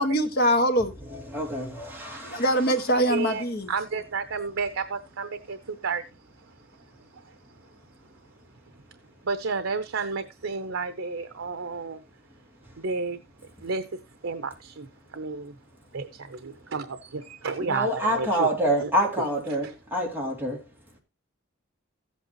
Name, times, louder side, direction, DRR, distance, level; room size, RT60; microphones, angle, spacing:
voice 1, 0.0-0.9 2.2-3.7, equal, 55° left, 1.5 m, -23 dB
voice 2, 1.1-2.4 17.6-20.6, right 1 dB, 10° right, 2.6 m, -27 dB
voice 3, 2.9-6.0 9.2-12.0 12.8-13.2 13.6-13.8 14.2-15.5 15.9-18.5 18.8-18.9 19.6-19.7, right 4 dB, 85° right, 0.7 m, -31 dB
14.5 x 8.3 x 2.9 m
head